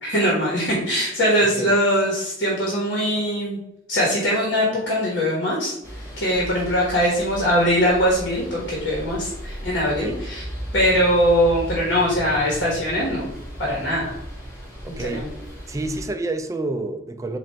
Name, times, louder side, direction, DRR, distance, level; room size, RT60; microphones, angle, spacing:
voice 1, 0.0-3.6 3.9-5.7 6.2-10.4 10.7-13.3 13.6-14.1 15.0-15.3, equal, 65° left, 1.3 m, -21 dB
sound 1, 5.8-16.1, equal, 15° left, 1.3 m, -36 dB
voice 2, 14.8-15.3 15.7-17.4, right 2 dB, 15° right, 0.3 m, -28 dB
4.3 x 2.5 x 4.3 m
head